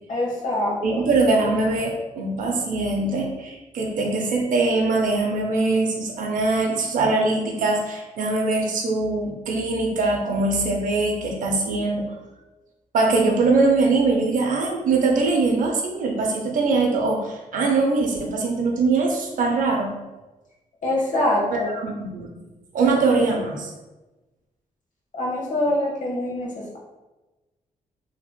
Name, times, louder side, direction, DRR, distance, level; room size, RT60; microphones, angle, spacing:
voice 1, 0.1-1.0 20.8-21.7 25.1-26.8, left 1 dB, 60° left, -3 dB, 0.9 m, -24 dB
voice 2, 0.8-12.1 12.9-20.0 21.5-22.3 22.7-23.7, right 3 dB, 70° right, 0 dB, 0.5 m, -22 dB
3.0 x 2.8 x 2.2 m, 1.1 s
cardioid pair, 80°, 14 cm